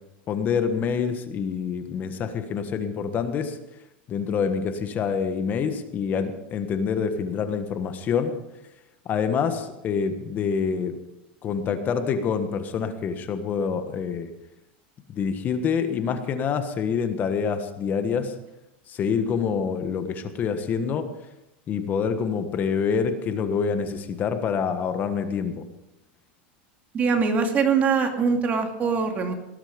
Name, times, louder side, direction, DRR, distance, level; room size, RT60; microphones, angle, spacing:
voice 1, 0.3-3.6 4.1-8.4 9.0-11.0 11.4-14.3 15.1-18.3 18.9-21.1 21.7-25.6, left 6 dB, 30° left, 9 dB, 1.4 m, -26 dB
voice 2, 26.9-29.3, right 5 dB, 30° right, 4 dB, 2.3 m, -22 dB
18.5 x 11.5 x 5.2 m, 0.90 s
supercardioid pair, 135°, 6 cm